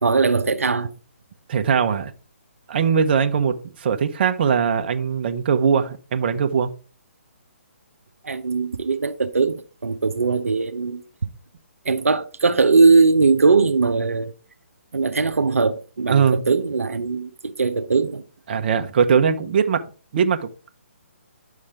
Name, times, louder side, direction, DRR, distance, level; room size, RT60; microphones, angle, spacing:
voice 1, 0.0-0.9 8.2-11.0 11.8-14.3 14.9-18.2, right 4 dB, 80° right, 0.8 m, -20 dB
voice 2, 1.5-2.1 2.7-6.7 16.1-16.4 18.5-19.8 20.1-20.5, right 6 dB, 45° right, 1.1 m, -20 dB
10.0 x 6.3 x 3.6 m
figure-of-eight pair, 145°, 8 cm